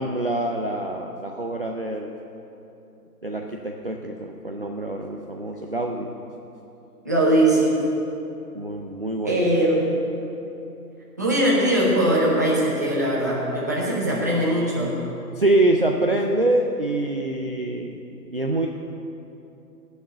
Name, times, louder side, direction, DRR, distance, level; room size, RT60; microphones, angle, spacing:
voice 1, 0.0-2.2 3.2-6.1 8.5-9.5 15.4-18.0 18.3-18.7, right 1 dB, 35° right, 1 dB, 0.5 m, -25 dB
voice 2, 7.0-7.8 9.2-9.9 11.2-15.0, right 1 dB, 10° right, -6 dB, 0.8 m, -21 dB
17.0 x 6.5 x 8.3 m, 2.9 s
hypercardioid pair, 165°, 49 cm